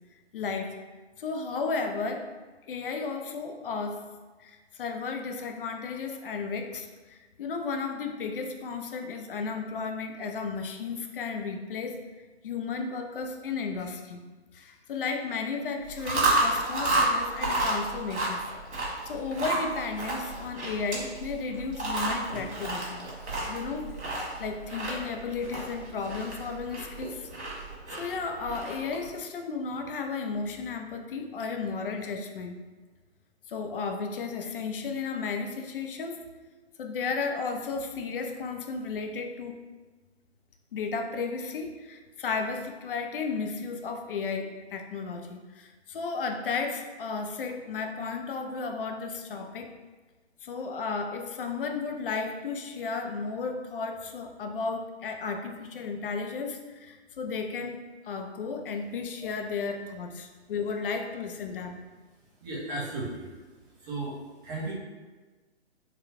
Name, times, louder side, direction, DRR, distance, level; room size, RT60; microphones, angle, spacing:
voice 1, 0.3-0.7 1.2-2.3 2.7-4.0 4.4-12.1 12.4-14.2 14.5-18.4 19.1-23.1 23.5-24.0 24.4-27.3 27.9-32.6 33.5-36.2 36.8-39.6 40.7-49.7 50.4-57.8 58.0-61.8, left 4 dB, 55° left, 4 dB, 0.5 m, -34 dB
Chewing mastication, 15.9-29.1, right 2 dB, 75° right, 1.4 m, -31 dB
voice 2, 62.4-63.3 63.8-64.2 64.4-64.7, right 2 dB, 20° right, -5 dB, 0.5 m, -34 dB
4.0 x 2.1 x 2.7 m, 1.3 s
figure-of-eight pair, 135°, 34 cm